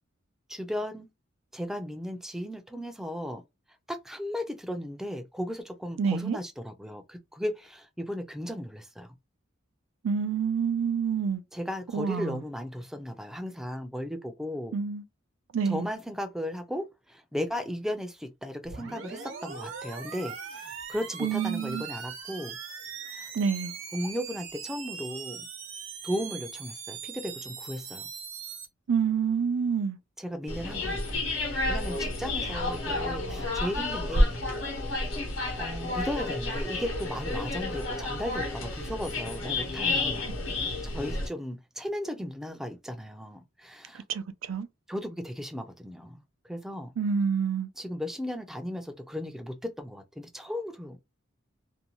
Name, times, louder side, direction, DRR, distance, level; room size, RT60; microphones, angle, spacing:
voice 1, 0.5-1.1 1.5-3.4 3.9-9.1 11.5-14.7 15.6-22.6 23.1-23.3 23.9-25.4 26.0-28.1 30.2-31.3 31.5-34.4 35.6-40.3 40.8-44.0 44.9-46.2 46.4-46.9 47.8-51.0, equal, ahead, 0.4 m, -36 dB
voice 2, 6.0-6.4 10.0-11.4 11.9-12.4 14.7-15.0 15.5-15.8 21.2-21.8 23.3-23.8 28.9-30.0 44.1-44.7 47.0-47.7, right 6 dB, 90° right, 0.4 m, -27 dB
sound 1, 18.6-28.6, right 6 dB, 70° right, 0.9 m, -41 dB
sound 2, 30.5-41.3, left 2 dB, 70° left, 1.0 m, -30 dB
2.6 x 2.2 x 2.9 m
head